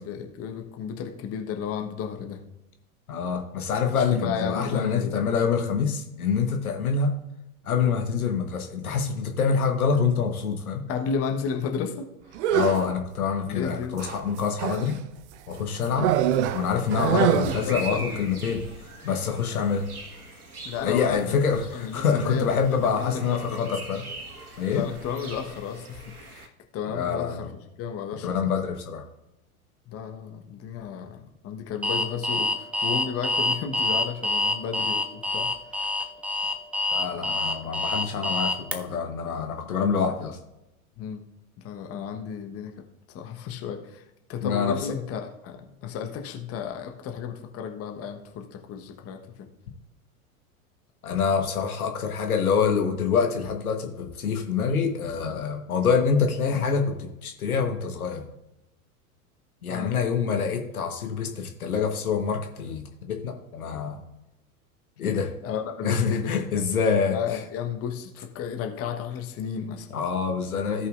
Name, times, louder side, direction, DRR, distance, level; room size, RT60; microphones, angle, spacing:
voice 1, 0.0-2.4 3.9-5.2 10.9-12.4 13.5-14.0 15.9-16.2 17.0-18.6 20.6-21.4 21.7-23.8 24.7-28.4 29.9-35.9 41.0-41.2 41.6-42.7 43.1-49.5 59.7-59.9 65.0-66.8 67.1-69.9, left 7 dB, 30° left, 4 dB, 1.2 m, -33 dB
voice 2, 3.1-7.1 7.6-10.8 12.5-15.0 15.5-16.1 16.5-18.6 19.0-19.9 20.8-24.0 24.6-24.8 26.9-27.5 28.2-29.0 36.9-40.4 44.4-44.8 51.0-58.2 59.6-64.0 65.0-65.3 65.8-67.2 69.9-70.9, left 6 dB, 75° left, 4 dB, 1.4 m, -26 dB
sound 1, 12.3-12.9 14.0-15.0 16.0-17.8, right 10 dB, 55° right, 0.6 m, -24 dB
sound 2, 16.1-26.5, right 2 dB, 80° right, 1.5 m, -42 dB
Alarm, 31.8-38.8, left 2 dB, 5° right, 0.4 m, -26 dB
16.5 x 5.6 x 2.5 m, 0.92 s
figure-of-eight pair, 90°, 44 cm